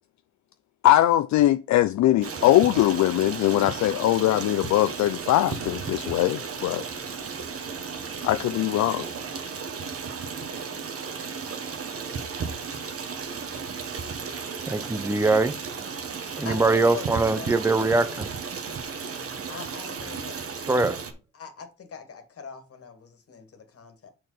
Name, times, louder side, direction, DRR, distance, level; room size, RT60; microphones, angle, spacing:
voice 1, 0.8-6.8 8.2-9.1, left 14 dB, 65° left, 0.5 m, -21 dB
Stream, 2.2-21.1, right 5 dB, 50° right, 1.5 m, -34 dB
voice 2, 14.7-15.6 16.4-18.3 20.7-21.0, right 3 dB, 10° right, 0.7 m, -22 dB
voice 3, 16.4-17.5 19.5-20.4 21.3-24.1, left 5 dB, 50° left, 2.0 m, -41 dB
6.4 x 4.4 x 5.7 m
cardioid pair, 90°, 30 cm